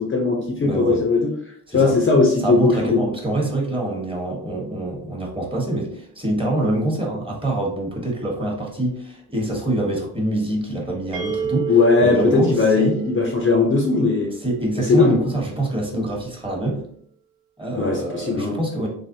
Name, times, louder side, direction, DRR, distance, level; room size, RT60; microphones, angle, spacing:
voice 1, 0.0-3.1 11.7-14.3 14.8-15.2 17.8-18.6, left 4 dB, 30° left, 0 dB, 0.6 m, -19 dB
voice 2, 0.6-1.0 1.7-2.0 2.4-13.0 14.4-16.9 17.6-18.9, right 1 dB, 15° right, -1 dB, 1.1 m, -25 dB
sound 1, 11.1-14.8, right 7 dB, 55° right, 1.0 m, -31 dB
3.3 x 2.1 x 2.6 m, 0.64 s
cardioid pair, 70°, 38 cm